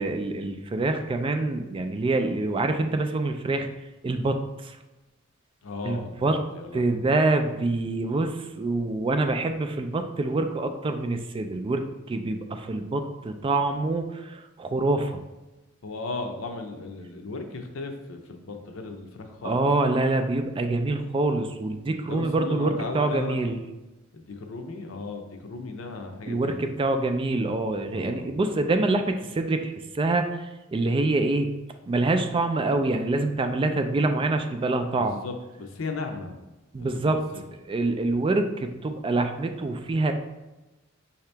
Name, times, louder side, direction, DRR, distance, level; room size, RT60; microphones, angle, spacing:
voice 1, 0.0-3.7 4.0-4.4 4.6-4.8 5.8-6.4 6.7-11.8 12.1-15.2 19.4-23.6 26.3-31.5 31.9-35.2 36.7-37.2 37.7-40.1, right 2 dB, 25° right, 7 dB, 0.3 m, -26 dB
voice 2, 5.6-7.1 15.8-19.7 22.1-23.6 24.1-26.7 27.9-28.3 34.9-36.4 36.8-37.2, left 3 dB, 75° left, 4 dB, 0.6 m, -36 dB
5.7 x 2.8 x 3.3 m, 1.1 s
head